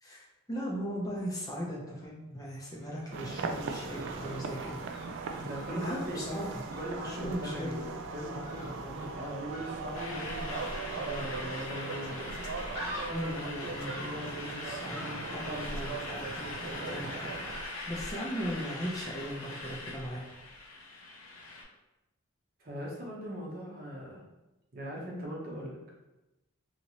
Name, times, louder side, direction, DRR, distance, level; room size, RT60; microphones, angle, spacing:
voice 1, 0.0-4.8 5.7-6.6 7.0-7.8 13.1-20.2, equal, 15° left, -4 dB, 0.5 m, -38 dB
sound 1, 2.6-20.8 21.0-21.1, equal, 10° right, 1.1 m, -47 dB
sound 2, 3.1-17.6, right 4 dB, 60° right, 0.3 m, -40 dB
voice 2, 5.4-6.2 6.8-12.3 22.6-24.2 24.7-25.8, equal, 45° right, -3 dB, 0.8 m, -40 dB
sound 3, 9.9-21.6, left 2 dB, 75° left, 0.6 m, -42 dB
2.9 x 2.8 x 2.8 m, 1.0 s
head